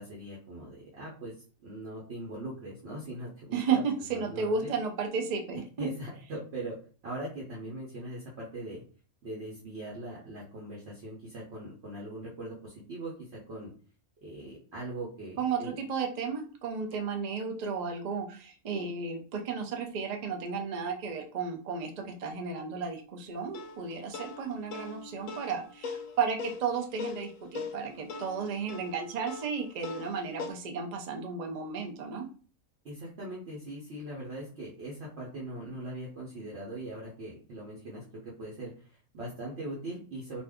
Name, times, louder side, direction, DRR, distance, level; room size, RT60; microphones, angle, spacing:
voice 1, 0.0-1.3 1.6-3.8 4.1-4.7 5.8-6.8 7.0-8.8 9.2-13.7 14.2-15.7 32.8-40.4, right 1 dB, 55° right, -5 dB, 1.0 m, -41 dB
voice 2, 3.5-5.9 15.4-32.2, right 5 dB, 85° right, 3 dB, 0.3 m, -33 dB
sound 1, 23.5-30.5, left 4 dB, 75° left, 0.9 m, -41 dB
2.6 x 2.4 x 3.5 m, 0.40 s
omnidirectional pair, 1.5 m